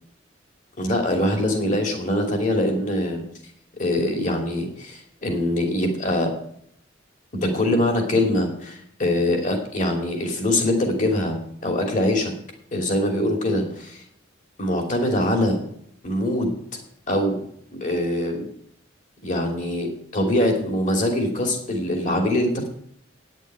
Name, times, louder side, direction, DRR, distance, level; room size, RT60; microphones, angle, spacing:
voice 1, 0.8-3.2 3.8-6.3 7.4-11.3 11.6-12.3 12.7-14.0 14.6-15.6 16.0-16.6 17.1-17.4 17.7-18.5 19.2-19.9 20.1-22.7, left 1 dB, 40° left, 2 dB, 2.9 m, -23 dB
9.4 x 8.3 x 9.2 m, 0.70 s
head